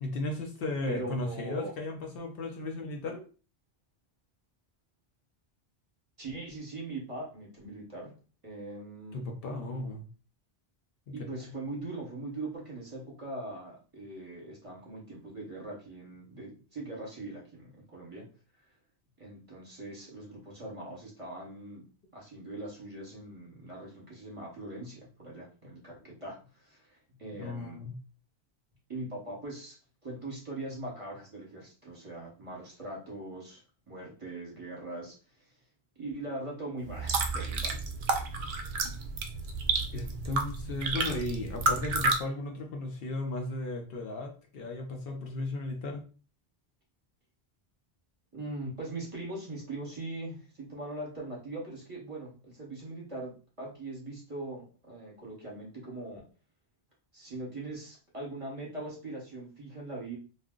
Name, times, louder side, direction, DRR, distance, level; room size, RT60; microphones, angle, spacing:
voice 1, 0.0-3.2 9.1-10.1 11.1-11.2 27.4-28.0 39.9-46.0, left 2 dB, 65° left, 2 dB, 0.8 m, -35 dB
voice 2, 0.9-1.7 6.2-8.1 8.4-9.2 11.1-18.3 19.2-21.8 22.1-27.8 28.9-29.7 30.0-33.6 33.9-35.6 36.0-37.8 48.3-56.2 57.1-60.2, right 2 dB, 35° right, -4 dB, 1.0 m, -41 dB
sound 1, 36.8-42.2, right 3 dB, 55° right, 0.6 m, -31 dB
2.5 x 2.0 x 3.6 m, 0.36 s
omnidirectional pair, 1.1 m